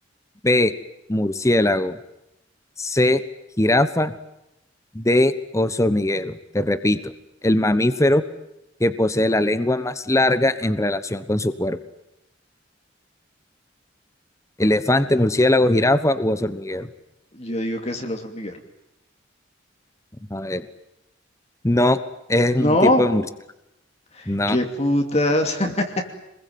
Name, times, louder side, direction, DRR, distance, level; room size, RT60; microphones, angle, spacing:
voice 1, 1.1-2.0 2.8-3.2 3.6-4.1 4.9-7.1 7.4-8.2 8.8-11.8 14.6-16.9 20.3-20.7 21.6-22.0 22.3-23.2 24.3-24.6, left 1 dB, 15° left, 12 dB, 1.2 m, -20 dB
voice 2, 17.3-18.6 22.6-23.0 24.2-25.9, left 1 dB, 35° left, 4 dB, 2.8 m, -22 dB
27.0 x 21.5 x 9.5 m, 0.87 s
head